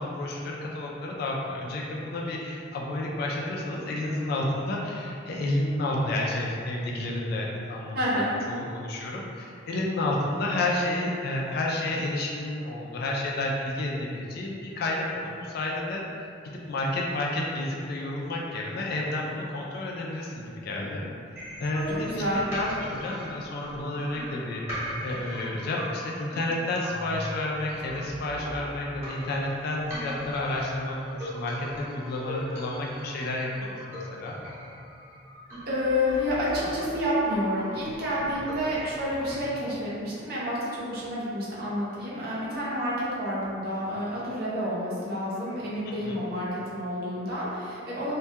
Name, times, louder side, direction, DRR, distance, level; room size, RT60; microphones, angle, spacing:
voice 1, 0.0-16.0 16.7-21.0 21.6-34.4 46.0-46.2, left 1 dB, 50° left, -3 dB, 0.3 m, -30 dB
voice 2, 7.9-8.4 21.7-22.5 35.6-48.2, equal, 50° right, -8 dB, 0.6 m, -29 dB
sound 1, 21.4-39.4, equal, 15° right, 0.9 m, -40 dB
2.2 x 2.2 x 2.7 m, 2.4 s
head